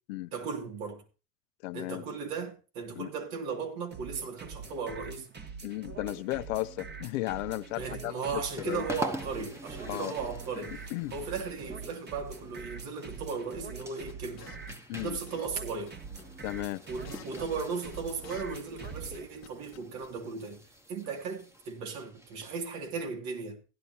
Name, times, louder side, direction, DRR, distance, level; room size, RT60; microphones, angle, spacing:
voice 1, 0.3-1.0 1.7-5.3 7.8-14.5 15.0-16.0 16.9-20.6 20.9-23.6, right 5 dB, 65° right, 2.7 m, -36 dB
voice 2, 1.6-2.0 2.9-3.1 5.6-8.9 9.8-10.2 10.9-11.1 14.9-15.2 16.4-16.8, left 19 dB, 80° left, 0.7 m, -35 dB
sound 1, 3.9-19.3, right 5 dB, 25° right, 1.4 m, -44 dB
sound 2, 7.8-23.0, equal, 5° right, 1.2 m, -45 dB
sound 3, 13.8-14.7 15.0-15.6 15.9-16.0 16.2-16.5 16.7-18.9 19.1-20.1, left 13 dB, 40° left, 1.1 m, -51 dB
16.0 x 11.0 x 2.9 m
supercardioid pair, 105°, 39 cm